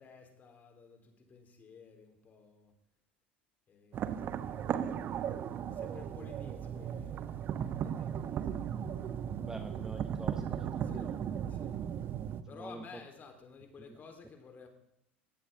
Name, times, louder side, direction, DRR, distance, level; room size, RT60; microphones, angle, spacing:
voice 1, 0.0-2.7 3.7-4.2 5.7-7.3 7.8-8.6 10.8-11.1 11.5-11.7 12.5-14.7, left 5 dB, 30° left, 4 dB, 3.9 m, -53 dB
sound 1, 3.9-12.4, right 9 dB, 40° right, 1.1 m, -36 dB
voice 2, 9.4-11.2 12.5-13.0 13.9-14.0, right 2 dB, 10° right, 7 dB, 1.4 m, -46 dB
19.5 x 15.5 x 3.8 m, 0.83 s
figure-of-eight pair, 70°, 6 cm